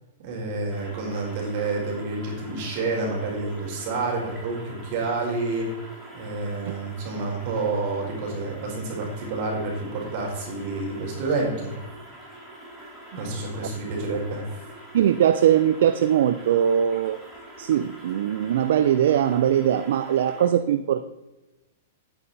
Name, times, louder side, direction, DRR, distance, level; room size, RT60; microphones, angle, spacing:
voice 1, 0.2-5.7 6.1-11.7 13.1-14.4, right 3 dB, 50° right, -1 dB, 4.3 m, -29 dB
sound 1, 0.7-20.4, right 1 dB, 5° right, 4.2 m, -45 dB
voice 2, 14.9-17.2 17.6-21.1, right 10 dB, 70° right, 11 dB, 0.5 m, -21 dB
11.5 x 9.0 x 4.2 m, 1.0 s
hypercardioid pair, 135°, 0 cm